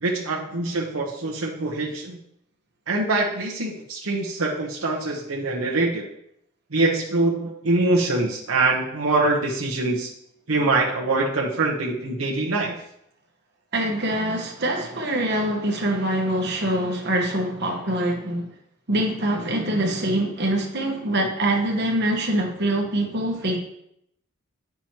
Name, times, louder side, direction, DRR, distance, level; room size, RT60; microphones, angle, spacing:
voice 1, 0.0-2.2 2.9-6.1 6.7-10.1 10.5-12.7, right 2 dB, 75° right, -2 dB, 1.0 m, -24 dB
voice 2, 13.7-18.5 18.9-23.6, right 1 dB, 50° right, 1 dB, 1.3 m, -24 dB
9.0 x 6.0 x 2.9 m, 0.76 s
head